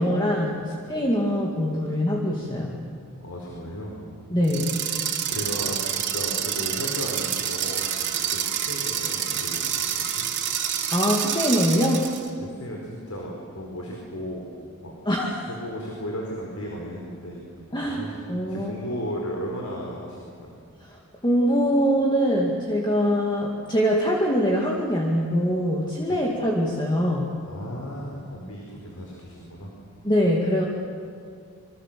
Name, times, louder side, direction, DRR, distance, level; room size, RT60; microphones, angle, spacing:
voice 1, 0.0-2.7 4.3-4.8 10.9-12.1 15.1-15.5 17.7-18.7 20.8-27.4 30.0-30.6, equal, 20° left, -2 dB, 2.3 m, -23 dB
voice 2, 3.2-3.9 5.3-10.2 12.4-14.5 14.8-14.9 15.5-17.4 17.8-18.1 18.5-20.5 26.1-26.2 27.4-29.7, equal, 85° left, -2 dB, 4.8 m, -35 dB
sound 1, 4.4-12.3, right 9 dB, 55° right, 2.9 m, -28 dB
26.5 x 25.0 x 7.7 m, 2.2 s
head